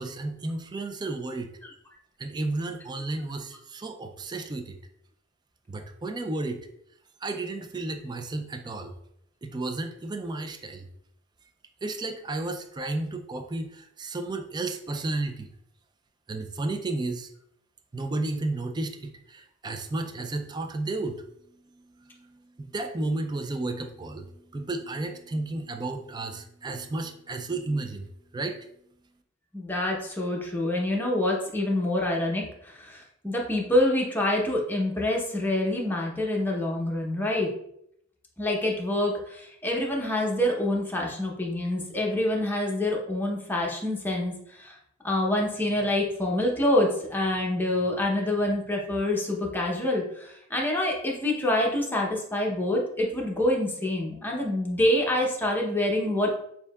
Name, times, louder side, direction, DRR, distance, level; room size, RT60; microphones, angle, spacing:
voice 1, 0.0-1.5 2.2-4.8 5.7-6.7 7.2-8.9 9.4-10.9 11.8-15.5 16.3-17.3 17.9-21.2 22.2-28.1 28.3-28.7, right 2 dB, 20° right, 6 dB, 0.4 m, -32 dB
voice 2, 29.5-37.5 38.4-44.8 45.0-56.3, left 1 dB, 10° left, -2 dB, 0.8 m, -26 dB
6.5 x 2.7 x 2.3 m, 0.73 s
head